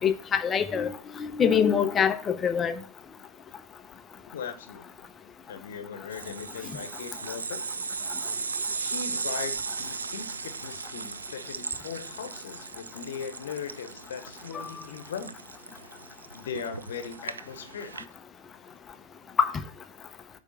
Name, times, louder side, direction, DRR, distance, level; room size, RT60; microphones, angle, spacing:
voice 1, 0.0-2.8 14.5-14.7 19.4-19.5, left 7 dB, 20° left, 0.6 m, -25 dB
voice 2, 4.3-5.1 5.5-7.7 8.2-8.5 8.7-15.4 16.3-18.0, left 7 dB, 60° left, 0.9 m, -39 dB
sound 1, 6.1-18.1, right 5 dB, 75° right, 0.4 m, -37 dB
8.2 x 3.5 x 6.4 m
figure-of-eight pair, 90°, 0 cm